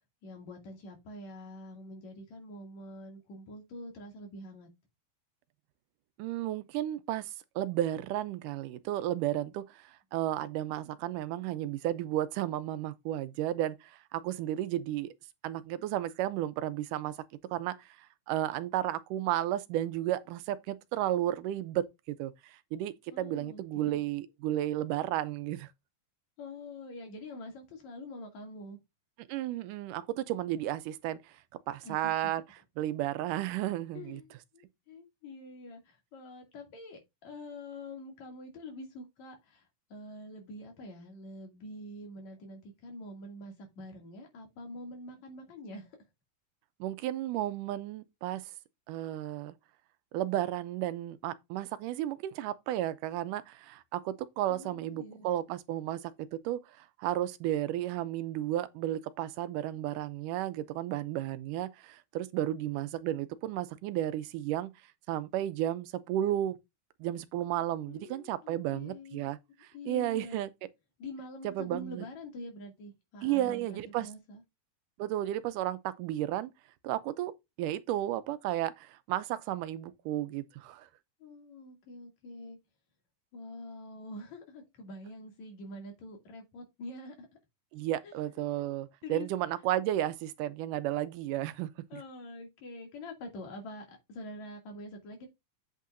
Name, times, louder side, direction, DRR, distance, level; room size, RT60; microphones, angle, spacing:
voice 1, 0.2-4.7 23.1-24.0 26.4-28.8 31.8-32.3 33.9-46.0 54.5-55.3 67.9-69.3 69.7-70.4 71.0-74.4 81.2-82.6 83.3-87.3 88.0-89.3 91.9-95.3, left 1 dB, 60° left, 3.7 m, -46 dB
voice 2, 6.2-7.3 7.6-15.1 15.4-17.1 17.5-25.7 29.3-31.4 31.7-32.4 32.8-34.2 46.8-48.4 48.9-49.5 50.1-64.7 65.1-66.6 67.0-69.4 69.9-70.5 71.4-72.0 73.2-74.1 75.0-76.5 76.8-77.3 77.6-80.9 87.7-92.0, right 13 dB, 85° right, 2.2 m, -33 dB
8.4 x 8.2 x 2.6 m
omnidirectional pair, 3.7 m